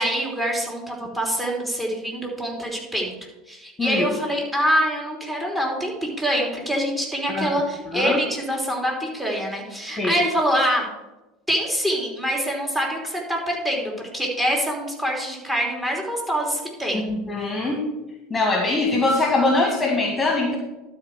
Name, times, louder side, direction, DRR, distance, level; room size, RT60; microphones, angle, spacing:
voice 1, 0.0-3.1 3.5-10.9 11.5-17.1, equal, 10° right, -1 dB, 3.2 m, -25 dB
voice 2, 7.9-8.2 10.0-10.2 16.9-17.8 18.3-20.6, left 2 dB, 20° left, 1 dB, 1.8 m, -22 dB
12.0 x 4.5 x 6.2 m, 1.0 s
figure-of-eight pair, 75°, 0 cm